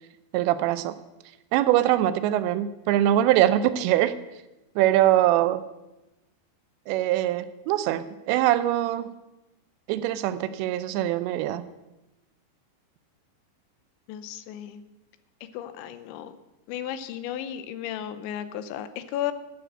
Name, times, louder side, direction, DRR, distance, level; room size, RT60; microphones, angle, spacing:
voice 1, 0.3-1.0 1.5-4.2 4.8-5.6 6.9-9.1 9.9-11.7, right 13 dB, 80° right, 12 dB, 2.7 m, -23 dB
voice 2, 14.1-14.8 15.4-16.4 16.7-19.3, left 11 dB, 85° left, 12 dB, 3.0 m, -34 dB
12.0 x 6.7 x 8.7 m, 0.99 s
omnidirectional pair, 5.3 m